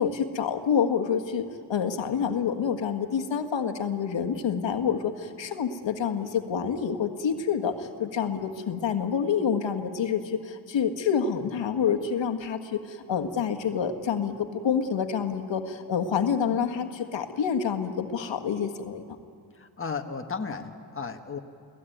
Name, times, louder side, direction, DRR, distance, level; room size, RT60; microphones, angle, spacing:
voice 1, 0.0-19.2, left 7 dB, 70° left, 6 dB, 1.6 m, -27 dB
voice 2, 19.5-21.4, left 5 dB, 25° left, 4 dB, 1.5 m, -34 dB
29.5 x 17.5 x 9.3 m, 2.3 s
cardioid pair, 110°, 46 cm